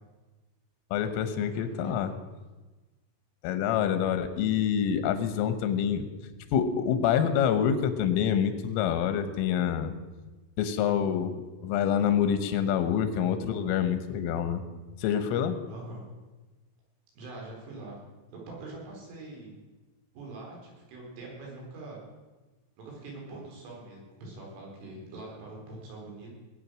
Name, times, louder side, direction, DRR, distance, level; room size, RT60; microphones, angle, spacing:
voice 1, 0.9-2.1 3.4-6.1 6.5-10.0 10.6-14.6 15.0-15.6, left 8 dB, 85° left, 10 dB, 3.7 m, -26 dB
voice 2, 1.4-1.9 15.7-16.0 17.2-18.0 18.3-19.6 20.1-22.0 22.8-26.3, right 2 dB, 80° right, -2 dB, 6.6 m, -43 dB
20.0 x 8.9 x 6.3 m, 1.2 s
omnidirectional pair, 5.6 m